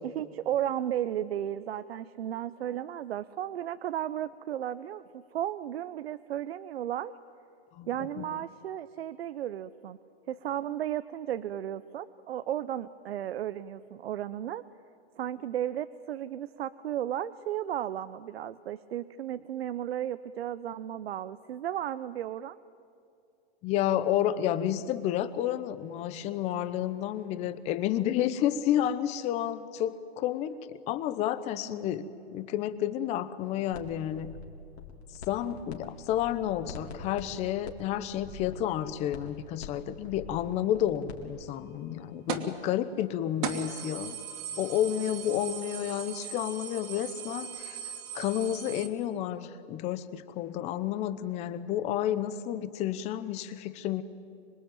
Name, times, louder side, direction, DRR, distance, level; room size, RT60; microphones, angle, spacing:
voice 1, 0.0-7.1 7.9-10.0 10.3-14.6 15.2-22.6 31.7-32.0 44.9-45.2, right 11 dB, 70° right, 13 dB, 0.8 m, -34 dB
voice 2, 23.6-34.3 35.3-44.2 44.6-54.0, left 11 dB, 20° left, 14 dB, 0.8 m, -31 dB
sound 1, 33.7-33.9 34.2-35.8 36.0-41.2, left 5 dB, 75° left, 4.1 m, -44 dB
sound 2, 42.3-42.6 43.0-43.1 43.4-48.9, right 8 dB, 45° right, 2.6 m, -38 dB
25.5 x 22.0 x 9.2 m, 2.5 s
hypercardioid pair, 155°, 32 cm